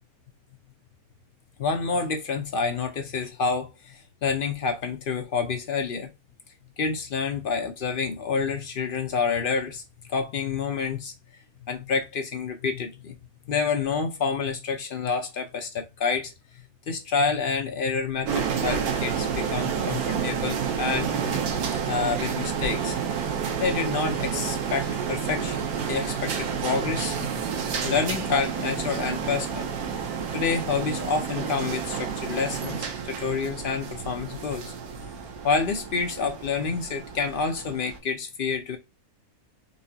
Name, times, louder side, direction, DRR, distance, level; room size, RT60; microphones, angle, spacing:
voice 1, 1.6-6.1 6.8-9.8 10.1-11.1 11.7-13.2 13.5-16.3 16.9-21.4 21.9-23.0 23.6-25.6 25.9-27.3 27.8-29.7 30.3-34.7 35.4-38.8, left 5 dB, 60° left, 0.5 m, -28 dB
sound 1, 18.3-38.0, right 7 dB, 90° right, 1.3 m, -30 dB
4.4 x 2.7 x 2.7 m
omnidirectional pair, 1.5 m